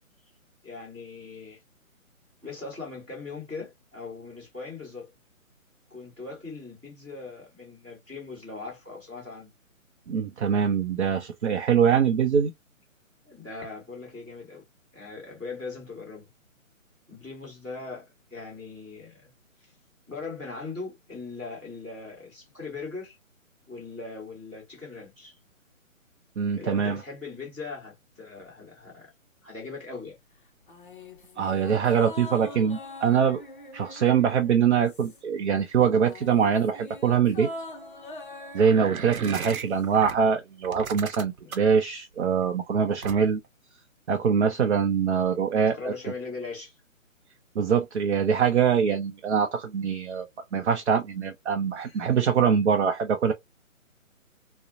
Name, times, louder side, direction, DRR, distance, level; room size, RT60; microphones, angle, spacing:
voice 1, 0.6-1.6 2.4-5.1 5.9-9.5 13.2-14.6 14.9-16.3 17.1-19.3 20.1-23.2 23.7-25.4 26.5-29.1 29.4-30.2 38.7-38.9 45.7-46.7 51.8-52.1, left 4 dB, 5° right, 1.0 m, -40 dB
voice 2, 10.1-12.5 26.4-27.0 31.4-33.4 33.7-37.5 38.5-43.4 44.1-45.9 47.6-50.3 50.5-53.3, right 7 dB, 55° right, 0.5 m, -23 dB
sound 1, 30.7-35.4 35.7-40.0 40.3-40.4, left 2 dB, 40° left, 0.5 m, -43 dB
sound 2, 38.6-40.1 40.6-41.8 43.0-43.5, right 6 dB, 90° right, 0.8 m, -36 dB
2.6 x 2.0 x 2.4 m
hypercardioid pair, 165°, 41 cm